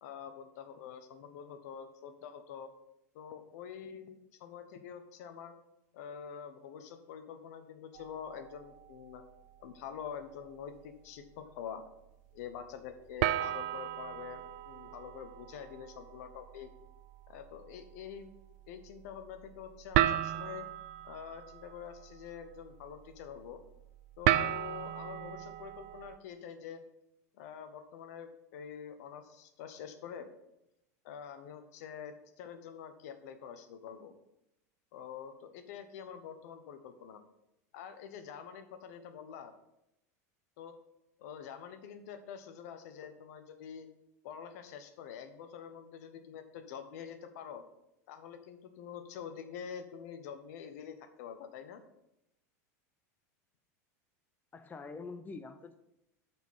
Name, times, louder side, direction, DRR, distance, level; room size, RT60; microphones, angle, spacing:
voice 1, 0.0-2.7 3.1-5.5 5.9-9.2 9.6-11.8 12.3-16.7 17.3-18.3 18.7-20.7 21.0-23.6 24.2-26.8 27.3-30.3 31.0-34.2 34.9-37.2 37.7-39.5 40.6-40.7 41.2-43.9 44.2-47.6 48.1-51.8, left 8 dB, 70° left, 9 dB, 0.9 m, -46 dB
sound 1, 7.9-9.5 9.9-10.2 10.8-10.9 13.2-26.2, right 14 dB, 65° right, 0.4 m, -36 dB
voice 2, 54.5-55.7, left 4 dB, 20° left, 9 dB, 0.6 m, -45 dB
8.1 x 4.4 x 5.5 m, 0.87 s
hypercardioid pair, 110°, 9 cm